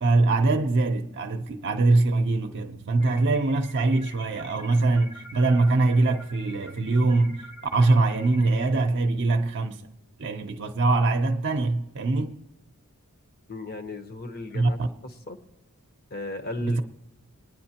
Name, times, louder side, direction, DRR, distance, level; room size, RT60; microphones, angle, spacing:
voice 1, 0.0-7.5 7.7-9.8 10.2-12.3 14.5-14.9 16.6-16.8, right 2 dB, 55° right, 0.6 m, -23 dB
sound 1, 3.0-8.8, left 1 dB, 85° left, 2.7 m, -47 dB
voice 2, 13.5-14.8 15.0-15.4 16.1-16.8, left 2 dB, 45° left, 1.0 m, -35 dB
20.5 x 9.6 x 2.9 m
head